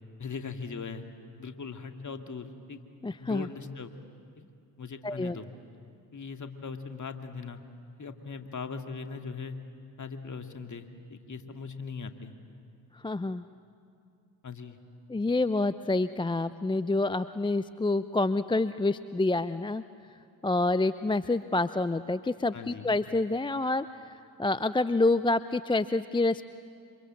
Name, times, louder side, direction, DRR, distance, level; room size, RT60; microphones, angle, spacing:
voice 1, 0.2-1.0 1.4-2.8 3.2-3.9 4.8-5.5 6.1-7.6 8.0-9.5 10.0-12.3 14.4-14.8 22.5-22.9, left 5 dB, 35° left, 6 dB, 2.4 m, -40 dB
voice 2, 3.0-3.5 5.0-5.4 13.0-13.5 15.1-19.8 20.4-24.1 24.4-26.4, left 2 dB, 10° left, 14 dB, 0.6 m, -27 dB
27.5 x 26.0 x 7.8 m, 2.4 s
hypercardioid pair, 45°, 48 cm